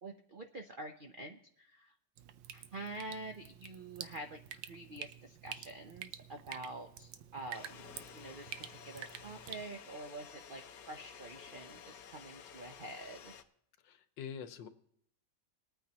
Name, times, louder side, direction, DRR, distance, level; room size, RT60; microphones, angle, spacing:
voice 1, 0.0-1.9 2.5-13.3, right 2 dB, 60° right, 4 dB, 0.5 m, -47 dB
Drip, 2.2-9.6, right 10 dB, 85° right, 1.4 m, -49 dB
sound 1, 7.5-13.4, left 7 dB, 60° left, 1.1 m, -53 dB
voice 2, 13.8-14.7, left 7 dB, 85° left, 10 dB, 1.6 m, -45 dB
21.0 x 9.1 x 2.9 m, 0.72 s
omnidirectional pair, 2.0 m